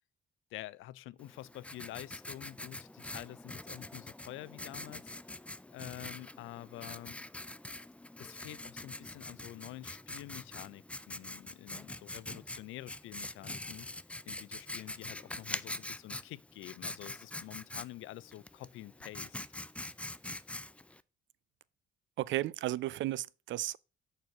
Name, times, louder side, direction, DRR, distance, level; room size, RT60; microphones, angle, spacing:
voice 1, 0.5-5.1 5.7-7.2 8.2-13.9 14.2-19.4, left 15 dB, 85° left, 0.4 m, -48 dB
Writing, 1.2-21.0, left 2 dB, 5° left, 0.3 m, -44 dB
voice 2, 22.2-23.8, right 15 dB, 70° right, 0.4 m, -34 dB
6.7 x 4.4 x 5.8 m
cardioid pair, 90°, 20 cm